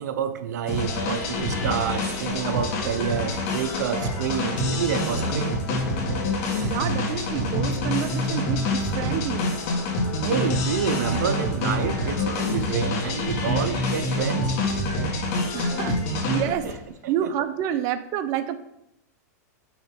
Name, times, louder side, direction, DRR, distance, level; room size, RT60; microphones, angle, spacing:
voice 1, 0.0-5.6 6.5-6.7 10.2-14.5 16.5-16.7 17.0-17.3, right 8 dB, 80° right, 0.6 m, -28 dB
Singing / Musical instrument, 0.6-13.5, left 5 dB, 75° left, 1.3 m, -41 dB
sound 1, 0.7-16.8, left 1 dB, 50° left, 1.7 m, -26 dB
voice 2, 6.6-9.6 15.5-16.7 17.1-18.6, right 11 dB, 40° right, 0.5 m, -28 dB
6.3 x 3.0 x 5.7 m
supercardioid pair, 140°, 9 cm